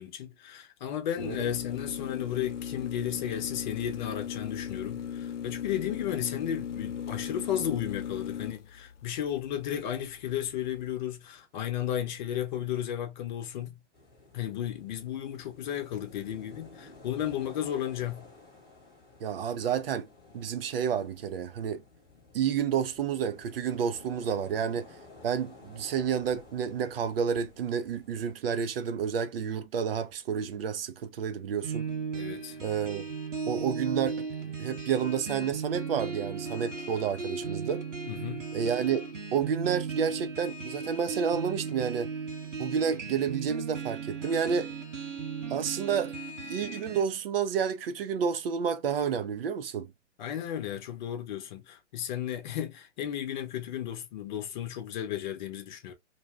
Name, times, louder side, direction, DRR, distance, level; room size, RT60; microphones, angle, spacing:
voice 1, 0.0-13.8 14.3-18.2 32.1-32.6 38.1-38.4 50.2-55.9, left 10 dB, 40° left, 0.8 m, -34 dB
sound 1, 1.2-10.9, left 8 dB, 80° left, 0.5 m, -38 dB
sound 2, 13.9-28.4, left 3 dB, 10° left, 1.1 m, -53 dB
voice 2, 19.2-20.1 20.3-21.8 22.3-24.9 25.2-31.9 32.6-33.0 33.5-37.8 38.5-39.0 39.3-42.1 42.6-44.7 45.5-46.1 46.5-49.9, right 7 dB, 55° right, 0.5 m, -30 dB
sound 3, 31.6-47.0, right 5 dB, 90° right, 1.1 m, -36 dB
2.6 x 2.2 x 3.2 m
hypercardioid pair, 130°, 36 cm